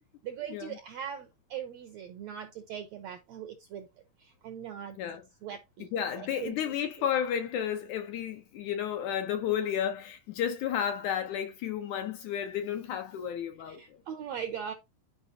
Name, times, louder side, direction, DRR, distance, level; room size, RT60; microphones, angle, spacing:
voice 1, 0.2-3.9 4.4-5.0 5.4-5.9 6.1-7.1 13.7-14.7, right 8 dB, 75° right, 1.6 m, -40 dB
voice 2, 4.9-5.2 5.9-13.8, left 9 dB, 75° left, 1.8 m, -32 dB
11.0 x 5.0 x 2.7 m
omnidirectional pair, 4.1 m